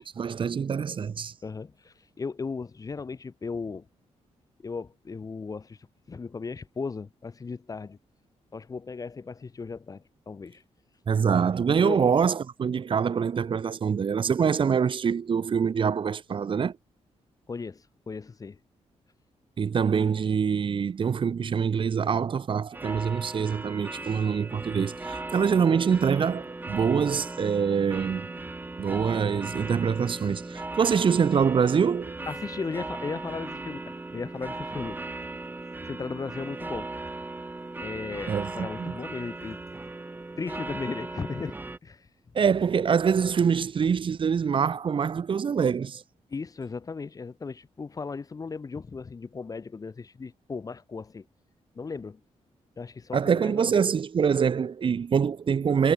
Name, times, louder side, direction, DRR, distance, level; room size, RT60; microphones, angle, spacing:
voice 1, 0.2-1.3 11.1-16.7 19.6-28.3 28.8-32.2 38.3-38.9 42.3-46.0 53.1-55.9, right 6 dB, 45° right, 4.4 m, -25 dB
voice 2, 1.4-3.9 4.6-5.8 6.1-8.0 8.5-10.6 11.8-12.0 17.5-18.6 32.3-35.0 35.8-36.9 37.8-39.6 40.4-42.1 46.3-51.3 51.7-52.2 52.8-53.8, left 4 dB, 30° left, 2.8 m, -36 dB
sound 1, 22.7-41.8, right 2 dB, 15° right, 6.2 m, -38 dB
wide cardioid pair, 145°, 12 cm